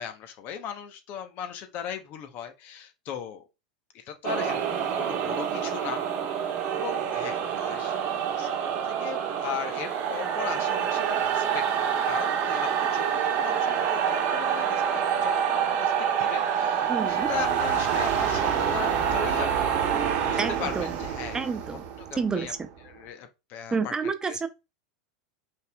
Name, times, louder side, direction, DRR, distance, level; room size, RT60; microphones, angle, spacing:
voice 1, 0.0-3.4 3.9-8.0 8.4-8.6 8.8-14.8 15.2-19.8 20.2-21.4 22.0-22.5 22.8-24.4, left 9 dB, 50° left, 0.9 m, -38 dB
sound 1, 4.2-22.8, right 8 dB, 50° right, 1.2 m, -27 dB
voice 2, 16.9-17.3 20.4-21.0 21.3-21.8 22.2-22.7 23.7-24.5, right 4 dB, 20° right, 0.5 m, -29 dB
5.4 x 3.5 x 2.3 m
hypercardioid pair, 100°, 4 cm